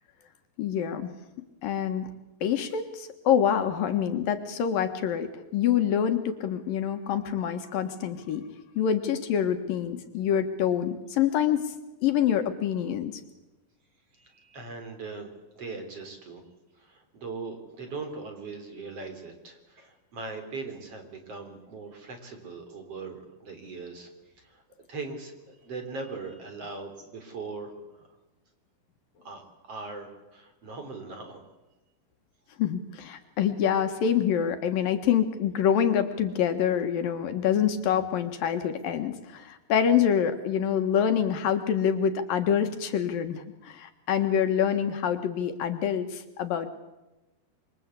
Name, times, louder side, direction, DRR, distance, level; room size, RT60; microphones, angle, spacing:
voice 1, 0.6-1.1 1.6-2.1 2.4-8.4 8.8-11.7 12.0-13.2 32.6-46.7, left 8 dB, 70° left, 8 dB, 3.1 m, -26 dB
voice 2, 14.1-16.4 16.8-24.1 24.4-24.6 24.9-28.1 29.2-29.4 29.7-31.5, right 3 dB, 40° right, 6 dB, 4.6 m, -40 dB
26.5 x 25.0 x 8.3 m, 1.0 s
omnidirectional pair, 4.4 m